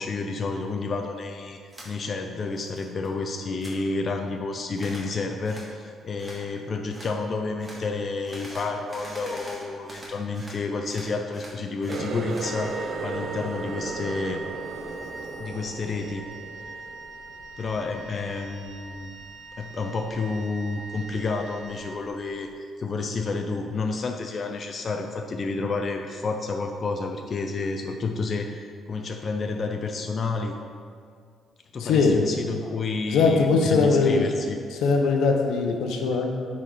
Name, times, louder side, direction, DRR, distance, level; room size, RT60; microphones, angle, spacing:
voice 1, 0.0-14.4 15.4-16.3 17.6-19.2 19.6-28.6 28.9-30.5 31.7-34.6, left 3 dB, 45° left, 4 dB, 0.5 m, -30 dB
sound 1, 1.7-1.9 2.3-3.1 3.3-3.7 4.8-5.1 5.4-5.7 6.2-6.4 6.9-7.1 7.6-7.8 8.2-10.6 10.8-12.5, equal, 15° right, 1.9 m, -43 dB
Water tap faucet, 11.9-17.4 17.7-18.2 18.7-19.0 19.7-19.8, right 3 dB, 60° right, 0.6 m, -35 dB
Wind instrument woodwind instrument, 12.4-22.5, right 3 dB, 80° right, 1.1 m, -42 dB
voice 2, 31.8-32.2 33.1-34.3 34.7-36.3, left 4 dB, 85° left, 3 dB, 0.8 m, -21 dB
9.7 x 4.2 x 3.8 m, 2.1 s
cardioid pair, 90°, 0 cm